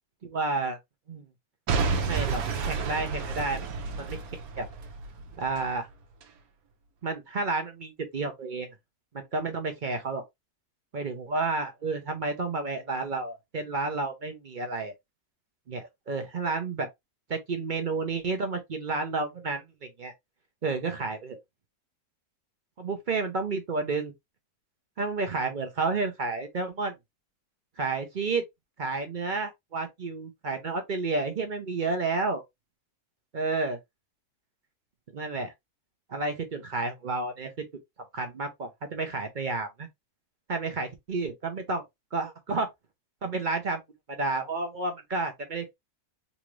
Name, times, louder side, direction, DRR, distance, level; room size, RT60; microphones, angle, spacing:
voice 1, 0.2-0.8 1.1-1.2 2.1-3.6 4.0-4.2 4.6-4.7 5.4-5.9 7.0-8.7 9.1-10.2 10.9-14.9 15.7-16.9 17.3-20.1 20.6-21.4 22.8-24.1 25.0-26.9 27.8-28.4 28.8-32.4 33.3-33.8 35.1-35.5 36.1-37.6 38.1-39.9 40.5-41.8 42.1-42.7 43.2-43.8 44.1-45.7, right 3 dB, 45° right, 0.6 m, -31 dB
Boom / Shatter / Crushing, 1.7-5.7 6.2-6.3, right 4 dB, 70° right, 1.2 m, -30 dB
4.0 x 2.5 x 3.0 m
omnidirectional pair, 1.6 m